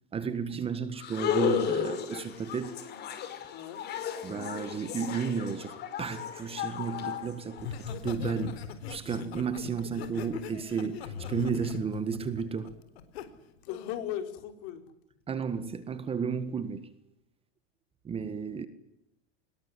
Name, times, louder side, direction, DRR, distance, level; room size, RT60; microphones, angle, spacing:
voice 1, 0.1-2.8 4.2-12.8 15.3-16.9 18.0-18.7, right 6 dB, 20° right, 1.6 m, -33 dB
sound 1, 1.0-7.9, left 9 dB, 35° left, 5.5 m, -34 dB
voice 2, 3.5-3.8 13.6-14.8, left 11 dB, 50° left, 4.8 m, -37 dB
Laughter, 7.6-13.2 13.7-14.0, left 6 dB, 90° left, 4.1 m, -40 dB
26.0 x 21.0 x 9.8 m
supercardioid pair, 150°, 31 cm